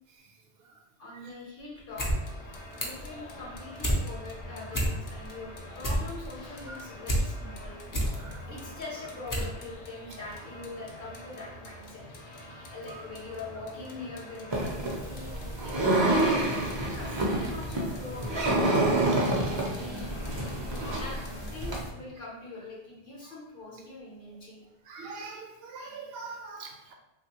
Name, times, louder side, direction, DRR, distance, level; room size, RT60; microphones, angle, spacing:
voice 1, 1.0-2.1 2.7-7.8 8.5-12.0 12.7-15.3 15.6-18.7 19.0-20.3 20.9-21.2 21.5-24.6, left 3 dB, 60° left, -4 dB, 0.9 m, -43 dB
sound 1, 1.8-2.2 2.4-3.1 3.4-4.0 4.4-4.5 4.7-5.3 5.6-7.2 7.6-8.2 8.7-8.8 9.3-9.5 9.8-9.9, equal, 35° left, 0.3 m, -29 dB
sound 2, 1.9-21.8, left 1 dB, 90° left, 0.8 m, -45 dB
sound 3, 14.5-21.9, right 2 dB, 40° right, 0.4 m, -28 dB
voice 2, 24.9-26.9, right 4 dB, 70° right, 2 dB, 0.8 m, -42 dB
3.1 x 2.2 x 2.8 m, 0.93 s
omnidirectional pair, 1.1 m